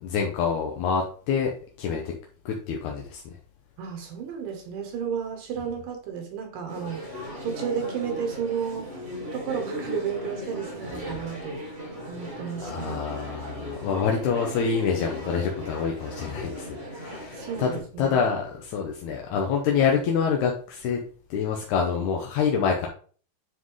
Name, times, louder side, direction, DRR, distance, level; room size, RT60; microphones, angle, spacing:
voice 1, 0.0-1.5 1.8-2.1 2.5-3.2 12.6-21.0 21.3-22.9, left 6 dB, 75° left, 1.9 m, -26 dB
voice 2, 3.8-13.0 17.3-18.2, right 7 dB, 70° right, 2.5 m, -33 dB
sound 1, 6.7-17.8, equal, 40° right, 0.6 m, -37 dB
9.4 x 3.8 x 3.1 m
omnidirectional pair, 4.2 m